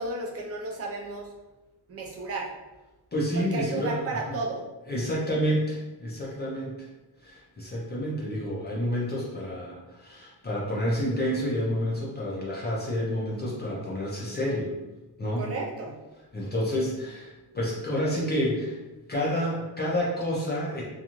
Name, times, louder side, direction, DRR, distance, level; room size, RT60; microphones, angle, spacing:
voice 1, 0.0-1.3 1.9-2.5 3.3-4.6 15.4-16.0, right 2 dB, 35° right, -2 dB, 0.5 m, -33 dB
voice 2, 3.1-4.2 4.9-6.8 7.2-14.7 15.2-15.5 16.3-18.8 19.1-20.8, equal, 25° left, -6 dB, 0.5 m, -29 dB
2.5 x 2.3 x 2.9 m, 1.1 s
wide cardioid pair, 165°, 41 cm